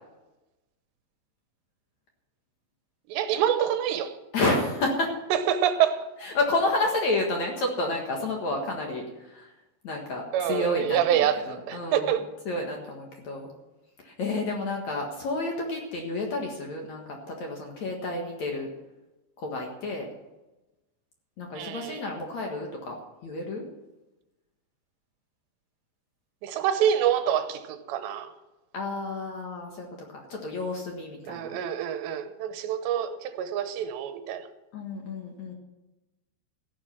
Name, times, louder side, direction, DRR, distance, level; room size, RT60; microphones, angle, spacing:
voice 1, 3.1-4.1 5.3-6.0 10.3-12.3 21.6-22.0 26.4-28.3 31.3-34.5, right 9 dB, 80° right, 3.1 m, -26 dB
voice 2, 4.3-5.1 6.2-9.5 9.8-12.2 12.5-13.5 14.0-18.7 19.4-20.1 21.4-23.0 23.2-23.6 28.7-29.9 30.1-31.6 34.7-35.5, left 2 dB, 55° left, 2.4 m, -30 dB
14.5 x 11.0 x 6.0 m
omnidirectional pair, 5.0 m